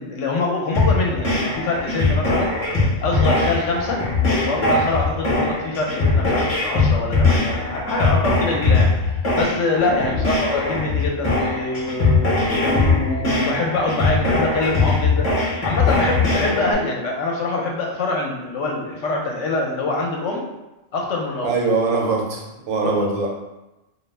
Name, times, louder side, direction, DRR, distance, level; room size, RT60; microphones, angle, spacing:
voice 1, 0.0-2.5 3.0-15.3 15.6-20.4 20.9-21.5 22.8-23.0, left 3 dB, 70° left, 0 dB, 0.9 m, -25 dB
sound 1, 0.7-16.7, left 3 dB, 40° left, 0.6 m, -20 dB
voice 2, 21.4-23.3, right 3 dB, 90° right, 0 dB, 1.0 m, -22 dB
2.4 x 2.0 x 3.2 m, 1.0 s
omnidirectional pair, 1.3 m